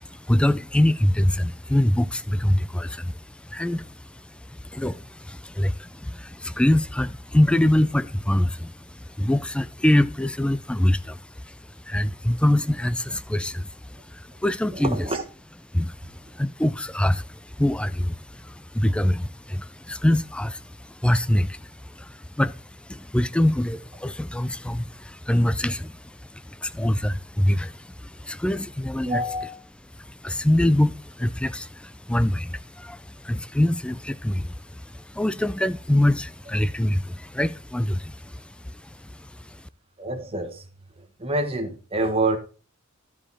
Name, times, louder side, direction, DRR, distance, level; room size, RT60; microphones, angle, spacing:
voice 1, 0.0-15.0 15.7-29.2 30.0-39.6, left 1 dB, 5° left, 0.3 m, -25 dB
voice 2, 14.7-15.2 29.0-29.5 40.0-40.7 41.0-42.4, right 2 dB, 25° right, 1.4 m, -27 dB
12.0 x 5.0 x 4.2 m
head